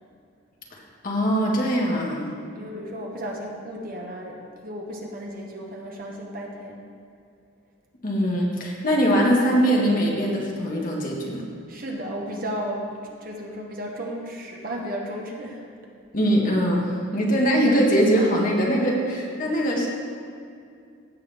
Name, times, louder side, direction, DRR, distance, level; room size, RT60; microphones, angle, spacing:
voice 1, 1.0-2.3 8.0-11.4 16.1-19.9, equal, 40° left, -2 dB, 1.6 m, -22 dB
voice 2, 2.3-6.8 11.7-15.6, equal, 45° right, 0 dB, 1.2 m, -34 dB
15.5 x 7.1 x 3.5 m, 2.4 s
head